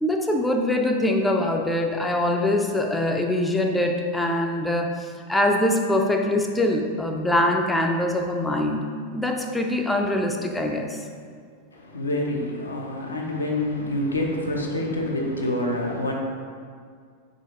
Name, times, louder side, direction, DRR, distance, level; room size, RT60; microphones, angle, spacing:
voice 1, 0.0-8.9 9.1-11.0, left 1 dB, 5° left, 2 dB, 0.3 m, -23 dB
voice 2, 11.7-16.1, left 1 dB, 75° left, 0 dB, 0.6 m, -27 dB
4.2 x 3.8 x 2.9 m, 2.1 s
figure-of-eight pair, 90°, 0 cm